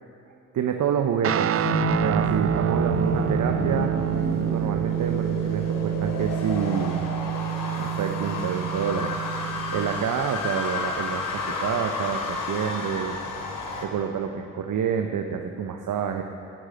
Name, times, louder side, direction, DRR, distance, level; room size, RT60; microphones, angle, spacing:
voice 1, 0.5-4.0 4.5-7.0 7.8-9.1 9.7-13.2 13.8-16.2, right 7 dB, 60° right, 5 dB, 1.2 m, -28 dB
Guitar, 1.2-10.1, right 11 dB, 40° right, 0.5 m, -27 dB
sound 1, 1.6-13.8, left 3 dB, 65° left, 3.0 m, -31 dB
17.0 x 9.9 x 8.0 m, 2.6 s
hypercardioid pair, 50°, 34 cm